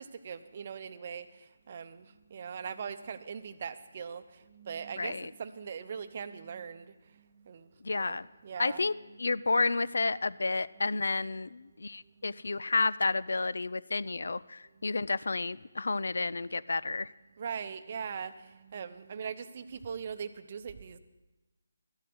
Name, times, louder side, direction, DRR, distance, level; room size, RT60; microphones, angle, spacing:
voice 1, 0.0-8.2 8.4-8.9 10.8-11.0 12.2-12.4 14.7-14.9 17.4-21.0, right 6 dB, 40° right, 11 dB, 0.7 m, -41 dB
voice 2, 5.0-5.3 7.8-8.3 8.6-8.9 9.2-17.1, left 3 dB, 70° left, 18 dB, 0.4 m, -31 dB
12.5 x 7.5 x 7.9 m, 1.1 s
figure-of-eight pair, 155°, 0 cm